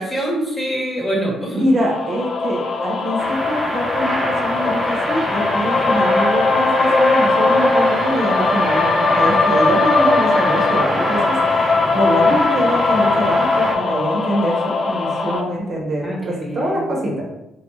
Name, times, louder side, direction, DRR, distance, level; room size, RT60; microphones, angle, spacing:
voice 1, 0.0-1.6 16.0-16.8, right 1 dB, 20° left, -2 dB, 1.1 m, -24 dB
voice 2, 1.5-17.2, equal, 50° right, -1 dB, 0.9 m, -24 dB
sound 1, 1.8-15.4, left 3 dB, 55° left, 0.4 m, -19 dB
sound 2, 3.2-13.7, right 1 dB, 15° right, 0.7 m, -25 dB
3.3 x 2.3 x 3.1 m, 0.88 s
cardioid pair, 90°, 0 cm